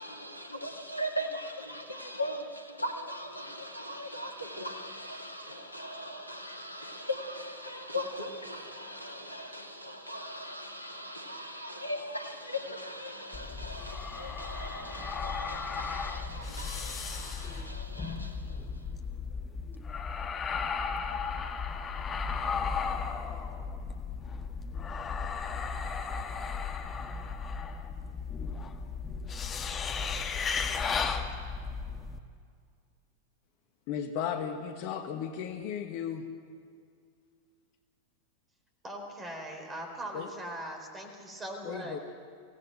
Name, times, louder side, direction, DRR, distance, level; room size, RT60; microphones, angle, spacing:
voice 1, 0.0-18.7, equal, 90° left, 1.9 m, -39 dB
sound 1, 13.3-32.2, left 5 dB, 25° left, 1.6 m, -35 dB
voice 2, 33.9-36.2 40.1-40.3 41.6-42.0, left 8 dB, 45° left, 1.5 m, -35 dB
voice 3, 38.8-42.0, right 1 dB, 20° right, 4.3 m, -40 dB
25.0 x 17.0 x 7.9 m
figure-of-eight pair, 90°, 0 cm